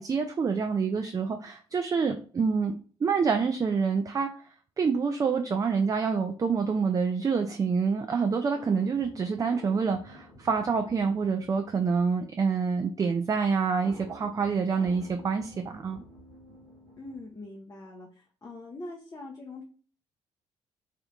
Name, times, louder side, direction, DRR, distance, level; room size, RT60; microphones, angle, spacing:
voice 1, 0.0-4.3 4.8-16.0, right 5 dB, 25° right, 5 dB, 0.4 m, -27 dB
sound 1, 8.5-12.3 13.8-17.4, right 1 dB, 80° right, 1.1 m, -50 dB
voice 2, 17.0-19.6, left 2 dB, 25° left, -1 dB, 0.7 m, -43 dB
3.2 x 2.8 x 2.4 m, 0.42 s
figure-of-eight pair, 45°, 14 cm